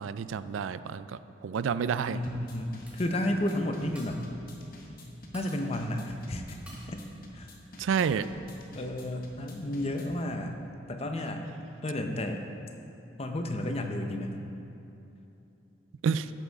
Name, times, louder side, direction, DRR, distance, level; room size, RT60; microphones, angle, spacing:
voice 1, 0.0-2.2 7.8-8.3 16.0-16.3, right 6 dB, 85° right, 14 dB, 0.3 m, -29 dB
voice 2, 2.1-4.2 5.3-6.6 6.9-7.0 7.3-7.5 8.0-8.1 8.6-10.5 10.9-11.5 11.8-12.4 13.2-14.4, left 1 dB, 30° left, 4 dB, 0.7 m, -32 dB
sound 1, 2.2-10.2, left 1 dB, 45° left, 1.3 m, -49 dB
sound 2, 2.9-3.3 3.7-4.4 4.7-4.8 5.1-5.7 6.2-6.3 6.6-7.0 7.3-7.6 8.0-8.3, right 1 dB, 5° right, 1.6 m, -52 dB
14.0 x 8.3 x 3.5 m, 2.8 s
head